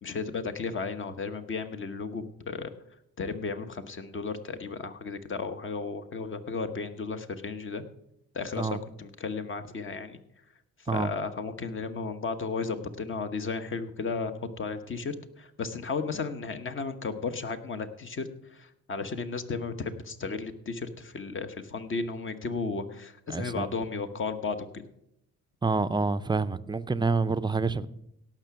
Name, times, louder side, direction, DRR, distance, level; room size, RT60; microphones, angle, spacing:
voice 1, 0.0-2.7 3.2-7.8 8.3-10.2 10.9-24.8, left 4 dB, 40° left, 1.1 m, -34 dB
voice 2, 23.3-23.7 25.6-27.9, right 4 dB, 15° right, 0.5 m, -27 dB
17.0 x 6.0 x 5.9 m
cardioid pair, 90°, 30 cm